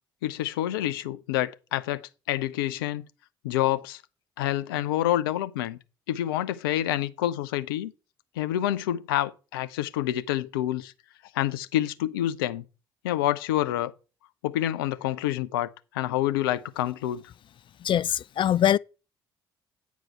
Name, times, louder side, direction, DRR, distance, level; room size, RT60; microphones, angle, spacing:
voice 1, 0.2-3.0 3.4-4.0 4.4-5.8 6.1-7.9 8.4-10.9 11.3-12.6 13.0-13.9 14.4-15.7 15.9-17.2, left 13 dB, 80° left, 0.6 m, -27 dB
voice 2, 17.8-18.8, left 10 dB, 45° left, 0.4 m, -22 dB
9.2 x 4.7 x 5.6 m
hypercardioid pair, 50°, 12 cm